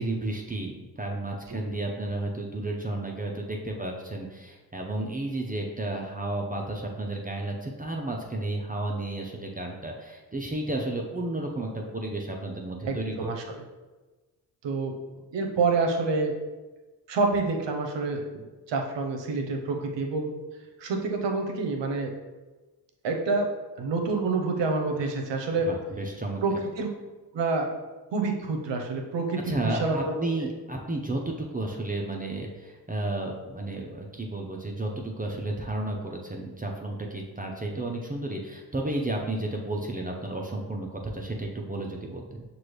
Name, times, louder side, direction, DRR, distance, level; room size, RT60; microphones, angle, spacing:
voice 1, 0.0-13.4 25.7-26.4 29.5-42.4, right 2 dB, 20° right, 0 dB, 0.7 m, -32 dB
voice 2, 12.8-13.6 14.6-14.9 15.3-16.3 17.1-20.3 20.8-22.1 23.0-23.5 23.8-25.7 26.4-26.9 27.3-27.7 28.1-30.5, right 3 dB, 65° right, 3 dB, 0.9 m, -28 dB
6.0 x 2.6 x 3.2 m, 1.2 s
supercardioid pair, 45°, 46 cm